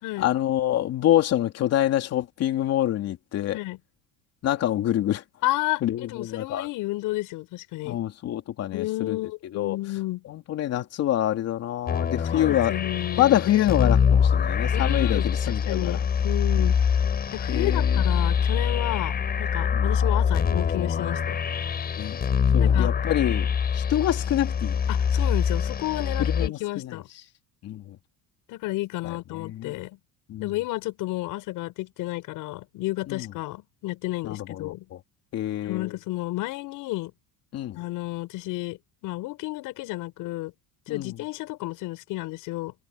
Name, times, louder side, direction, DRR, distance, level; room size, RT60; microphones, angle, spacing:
voice 1, 0.2-3.6 4.4-5.2 5.8-6.7 7.8-9.2 9.5-9.8 10.3-12.7 13.2-16.0 16.6-16.7 17.5-18.1 19.7-19.9 22.0-22.2 22.5-23.5 23.7-24.8 26.2-27.0 27.6-28.0 29.0-29.8 30.3-30.5 33.1-33.3 34.2-35.0 35.3-35.9 37.5-37.8 40.9-41.1, left 12 dB, 45° left, 3.3 m, -26 dB
voice 2, 5.4-8.0 8.7-10.2 12.3-13.4 14.7-16.8 17.3-21.4 22.6-22.9 24.9-27.1 28.5-30.0 30.4-34.8 35.6-37.1 37.7-40.5 40.9-42.7, left 19 dB, 65° left, 6.8 m, -31 dB
sound 1, 11.9-26.5, left 7 dB, 25° left, 7.2 m, -24 dB
cardioid pair, 165°, 35 cm